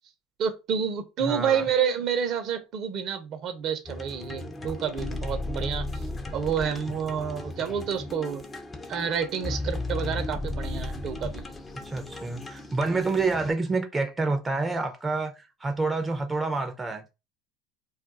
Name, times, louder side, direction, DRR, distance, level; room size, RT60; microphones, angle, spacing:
voice 1, 0.4-5.8 6.3-8.4 8.9-11.4, right 7 dB, 50° right, 0.7 m, -29 dB
voice 2, 1.2-1.7 11.8-17.0, right 3 dB, 15° right, 0.6 m, -28 dB
sound 1, 3.9-13.5, left 2 dB, 25° left, 0.7 m, -35 dB
2.4 x 2.2 x 3.9 m
hypercardioid pair, 80°, 0 cm